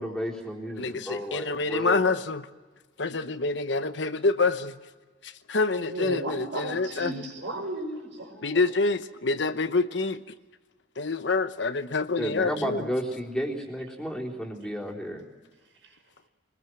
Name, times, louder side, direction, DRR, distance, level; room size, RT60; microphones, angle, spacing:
voice 1, 0.0-2.1 12.2-15.2, equal, 5° left, -3 dB, 3.7 m, -32 dB
voice 2, 0.8-2.5 3.0-4.8 5.2-7.2 8.4-10.3 11.0-12.9, left 3 dB, 70° left, 11 dB, 1.0 m, -27 dB
voice 3, 5.8-8.6, right 2 dB, 75° right, 4 dB, 5.7 m, -35 dB
24.0 x 20.5 x 7.6 m, 1.3 s
head